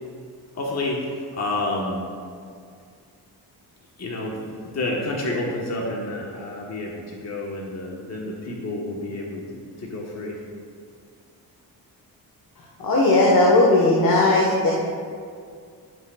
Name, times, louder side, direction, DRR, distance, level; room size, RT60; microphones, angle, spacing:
voice 1, 0.5-2.1 4.0-10.4, left 2 dB, 40° left, -2 dB, 1.3 m, -29 dB
voice 2, 12.8-14.7, left 2 dB, 60° left, -4 dB, 1.5 m, -17 dB
15.0 x 6.3 x 2.4 m, 2.2 s
cardioid pair, 85°, 39 cm